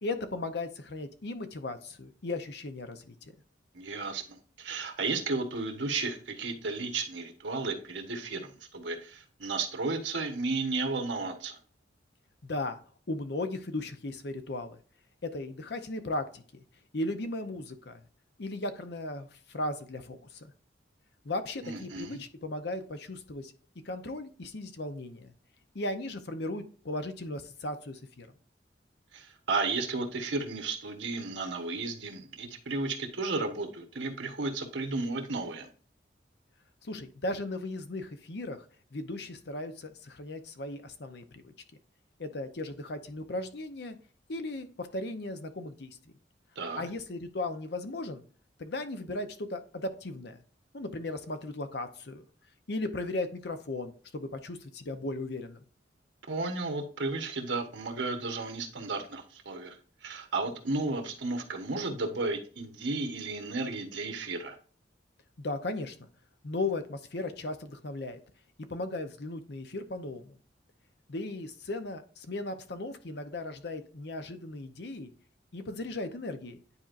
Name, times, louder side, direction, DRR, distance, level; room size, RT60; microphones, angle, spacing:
voice 1, 0.0-3.2 12.4-12.8 13.1-14.8 15.2-16.4 16.9-18.0 18.4-20.5 21.2-23.5 23.8-25.3 25.7-28.3 36.8-38.7 38.9-41.5 42.2-44.0 44.3-46.0 46.8-48.2 48.6-50.4 50.7-52.2 52.7-55.6 65.4-66.0 66.4-68.2 68.7-70.4 71.1-75.1 75.5-76.6, left 2 dB, 65° left, 9 dB, 0.8 m, -36 dB
voice 2, 3.7-11.6 21.6-22.2 29.1-35.7 46.5-46.8 56.3-64.6, right 3 dB, 85° right, 4 dB, 1.2 m, -33 dB
9.7 x 4.4 x 2.5 m, 0.42 s
head